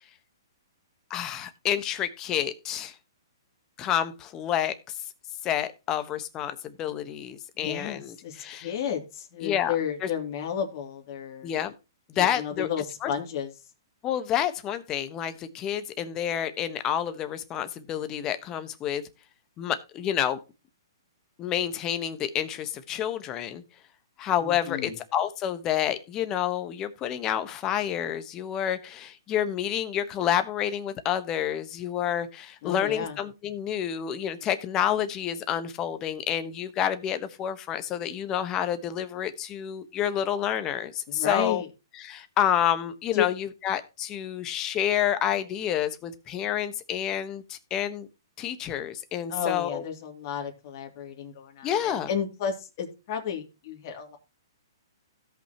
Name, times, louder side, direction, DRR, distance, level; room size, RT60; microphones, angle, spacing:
voice 1, 1.1-2.9 3.8-4.7 5.4-8.7 9.4-9.7 10.0-10.1 11.4-11.7 12.1-12.7 13.0-13.1 14.0-19.0 19.6-20.4 21.4-23.6 24.2-41.6 42.0-48.1 48.4-49.8 51.6-52.1, left 10 dB, 25° left, 11 dB, 1.2 m, -29 dB
voice 2, 7.6-11.5 12.1-13.5 24.4-25.0 32.6-33.2 41.1-41.7 43.1-43.3 49.3-54.2, left 8 dB, 40° left, 2 dB, 2.6 m, -32 dB
17.0 x 5.7 x 2.9 m, 0.28 s
hypercardioid pair, 145°, 2 cm